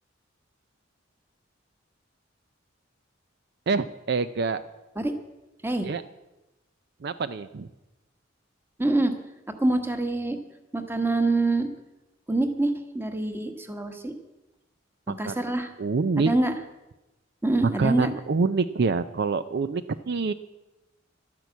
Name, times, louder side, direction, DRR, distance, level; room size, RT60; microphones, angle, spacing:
voice 1, 3.7-4.6 5.8-6.0 7.0-7.7 15.1-15.5 15.8-16.3 17.8-20.3, right 4 dB, 55° right, 13 dB, 0.5 m, -26 dB
voice 2, 8.8-9.1 9.6-10.4 10.7-11.7 12.3-14.1 15.2-15.7 16.2-16.5 17.4-18.1, right 2 dB, 10° right, 7 dB, 1.3 m, -25 dB
12.0 x 10.5 x 8.2 m, 1.0 s
head